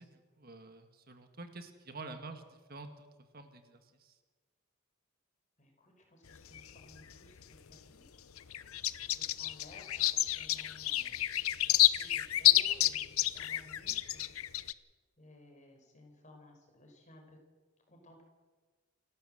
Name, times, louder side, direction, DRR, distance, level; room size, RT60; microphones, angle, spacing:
voice 1, 0.0-3.1 3.3-4.1, right 3 dB, 45° right, 7 dB, 1.7 m, -48 dB
voice 2, 5.6-8.2 9.1-11.2 11.6-14.3 15.2-17.4 17.9-18.2, left 1 dB, 35° left, 2 dB, 5.2 m, -58 dB
sound 1, 6.3-7.8 8.1-14.7, left 14 dB, 80° left, 0.7 m, -30 dB
28.0 x 12.0 x 7.9 m, 1.4 s
head